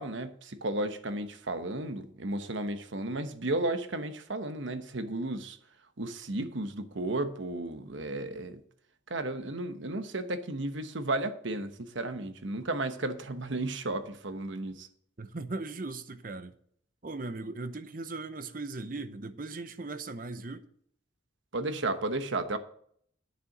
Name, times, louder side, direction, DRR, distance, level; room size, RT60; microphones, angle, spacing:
voice 1, 0.0-5.6 6.0-8.6 9.1-14.9 21.5-22.6, right 2 dB, 75° right, 1.1 m, -33 dB
voice 2, 15.2-16.5 17.0-20.7, right 3 dB, 45° right, 0.7 m, -38 dB
9.5 x 6.8 x 6.1 m
head